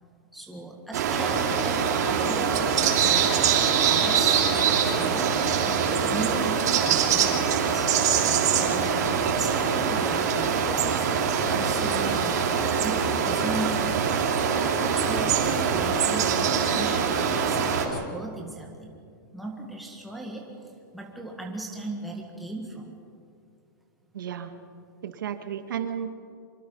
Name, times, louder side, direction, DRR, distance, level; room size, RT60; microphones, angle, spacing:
voice 1, 0.3-3.4 3.9-8.0 8.5-10.6 10.9-12.5 12.8-14.2 14.8-19.0 19.3-23.0, right 2 dB, ahead, -1 dB, 1.7 m, -37 dB
sound 1, 0.9-17.8, right 7 dB, 55° right, 3.2 m, -23 dB
voice 2, 24.1-24.5 25.0-26.1, right 9 dB, 80° right, 7 dB, 2.0 m, -33 dB
25.5 x 23.5 x 5.6 m, 2.4 s
supercardioid pair, 180°, 11 cm